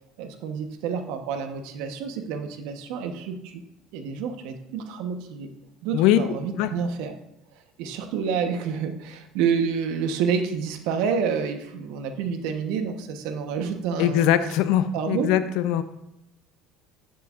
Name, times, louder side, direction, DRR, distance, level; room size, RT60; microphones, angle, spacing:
voice 1, 0.2-3.6 3.9-5.5 5.8-7.1 7.8-14.3 14.9-15.3, right 6 dB, 75° right, 6 dB, 1.1 m, -28 dB
voice 2, 5.9-6.3 6.6-6.7 14.0-15.8, left 11 dB, 75° left, 12 dB, 0.6 m, -21 dB
11.5 x 7.4 x 2.5 m, 0.86 s
supercardioid pair, 105°, 0 cm